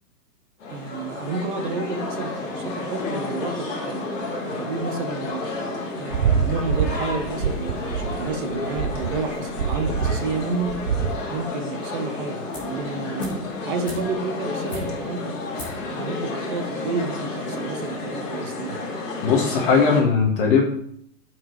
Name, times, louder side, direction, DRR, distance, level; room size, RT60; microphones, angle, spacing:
sound 1, 0.6-20.0, left 2 dB, 50° left, 2.4 m, -31 dB
voice 1, 0.7-5.4 5.9-10.8 11.3-13.3 13.6-15.3 15.9-18.8, right 4 dB, 30° right, 5 dB, 1.1 m, -30 dB
sound 2, 6.1-11.2, right 7 dB, 85° right, 0.9 m, -25 dB
sound 3, 12.5-12.8 13.2-15.2 15.5-15.9 16.2-16.3, left 2 dB, 5° left, 0.5 m, -39 dB
voice 2, 19.2-20.6, left 5 dB, 35° left, 2 dB, 1.6 m, -18 dB
13.5 x 4.7 x 3.2 m, 0.68 s
hypercardioid pair, 165°, 47 cm